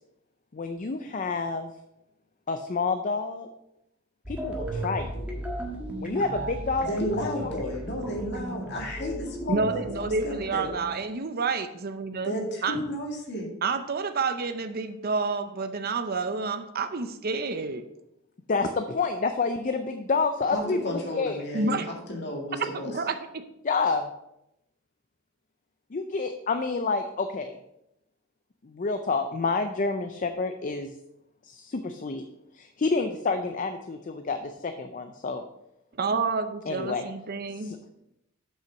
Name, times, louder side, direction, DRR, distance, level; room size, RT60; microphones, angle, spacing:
voice 1, 0.5-1.7 2.5-3.5 4.3-5.3 6.0-6.9 7.2-7.6 18.5-21.4 23.6-24.1 25.9-27.6 28.6-30.9 31.4-32.2 32.5-35.4 36.7-37.0 37.6-37.8, left 4 dB, 40° left, 7 dB, 0.5 m, -29 dB
sound 1, 4.2-10.9, right 1 dB, 5° right, 1.4 m, -36 dB
voice 2, 6.9-10.7 12.2-13.5 20.5-22.9, equal, 55° left, 0 dB, 2.0 m, -33 dB
voice 3, 9.5-12.3 12.6-12.7 13.6-17.8 21.5-21.9 22.9-23.4 36.0-37.7, right 4 dB, 45° right, 9 dB, 0.6 m, -29 dB
7.6 x 5.6 x 5.1 m, 0.84 s
head